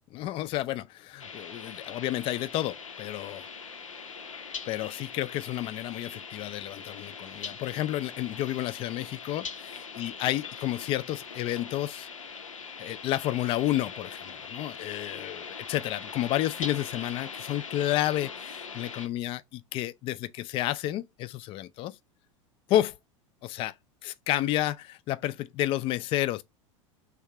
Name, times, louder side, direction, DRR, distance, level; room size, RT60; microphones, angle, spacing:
voice 1, 0.1-3.5 4.7-9.7 10.0-12.1 12.8-22.0 22.7-22.9 23.4-23.7 24.0-26.4, left 14 dB, 35° left, 0.4 m, -31 dB
sound 1, 1.2-19.1, left 5 dB, 80° left, 0.6 m, -41 dB
3.5 x 2.7 x 4.6 m
figure-of-eight pair, 80°, 17 cm